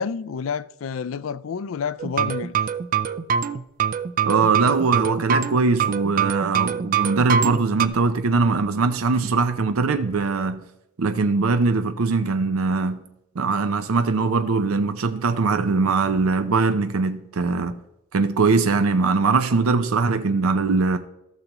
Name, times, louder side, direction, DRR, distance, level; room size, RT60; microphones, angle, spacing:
voice 1, 0.0-2.6, left 6 dB, 70° left, 0.4 m, -29 dB
sound 1, 2.0-7.9, right 7 dB, 40° right, 0.4 m, -24 dB
voice 2, 4.3-10.7 11.0-13.1 13.4-17.8 18.1-21.0, right 4 dB, 90° right, 0.6 m, -21 dB
15.0 x 6.7 x 3.0 m
head